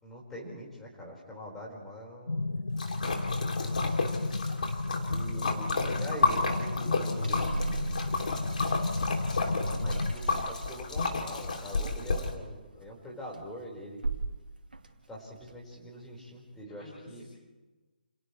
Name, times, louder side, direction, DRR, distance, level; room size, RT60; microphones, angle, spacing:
voice 1, 0.0-2.5 3.4-4.4 5.1-5.7 6.0-7.5 9.1-14.0 15.1-17.2, equal, 5° left, -4 dB, 5.1 m, -44 dB
sound 1, 2.3-10.2, left 3 dB, 80° left, 0.8 m, -33 dB
Splash splatter, 2.8-12.3, left 3 dB, 55° left, 3.2 m, -31 dB
voice 2, 3.5-3.8 5.1-6.2 6.6-7.4 12.7-12.9 16.6-17.2, left 2 dB, 30° left, -5 dB, 5.8 m, -50 dB
sound 2, 7.2-12.8 13.1-13.6 14.0-14.4 14.7-16.0, right 3 dB, 75° right, 2.7 m, -39 dB
29.5 x 29.5 x 3.4 m, 1.2 s
figure-of-eight pair, 145°, 5 cm